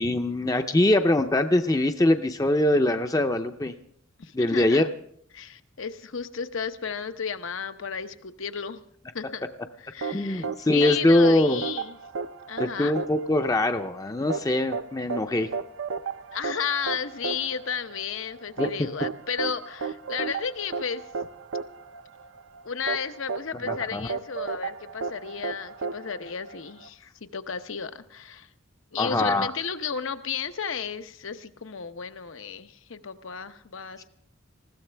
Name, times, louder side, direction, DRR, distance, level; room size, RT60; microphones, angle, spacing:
voice 1, 0.0-3.7 4.3-4.9 10.1-11.6 12.6-15.5 18.6-18.7 23.7-24.1 29.0-29.5, left 1 dB, 15° left, 7 dB, 0.5 m, -23 dB
voice 2, 4.2-4.8 5.3-8.8 9.1-9.5 9.8-12.0 12.5-13.0 16.3-21.0 22.6-28.5 28.9-34.0, left 6 dB, 75° left, 10 dB, 0.8 m, -33 dB
sound 1, 10.0-26.9, right 5 dB, 75° right, 0.6 m, -34 dB
20.0 x 15.5 x 3.4 m, 0.67 s
head